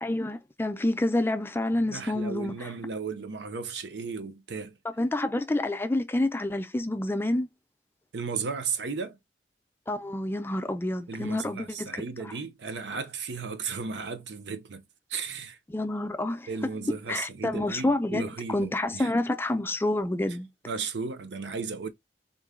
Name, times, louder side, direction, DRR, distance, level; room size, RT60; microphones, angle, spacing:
voice 1, 0.0-2.7 5.0-7.5 9.9-11.9 15.7-16.5 16.9-20.5, left 1 dB, 15° left, 0.4 m, -28 dB
voice 2, 1.8-4.8 8.1-9.2 11.1-14.8 15.1-15.6 16.5-19.1 20.7-21.9, right 5 dB, 80° right, 0.6 m, -35 dB
3.8 x 2.1 x 3.5 m
head